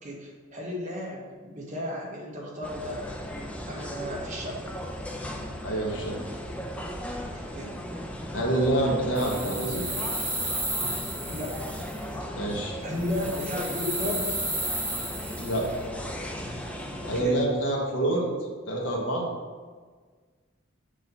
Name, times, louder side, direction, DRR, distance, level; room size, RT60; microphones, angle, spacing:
voice 1, 0.0-3.0 3.6-4.6 7.2-7.7 11.3-11.6 12.2-12.3 12.8-14.4 17.0-17.4, left 1 dB, 35° right, -2 dB, 1.1 m, -34 dB
sound 1, 2.6-17.2, equal, 5° left, 0.4 m, -37 dB
voice 2, 5.6-6.2 8.3-9.8 12.3-12.8 15.4-15.7 17.1-18.3 18.7-19.2, right 1 dB, 65° left, -1 dB, 1.2 m, -26 dB
sound 2, 9.2-12.0 13.0-15.7, right 1 dB, 15° right, 1.5 m, -33 dB
6.3 x 2.8 x 5.4 m, 1.5 s
head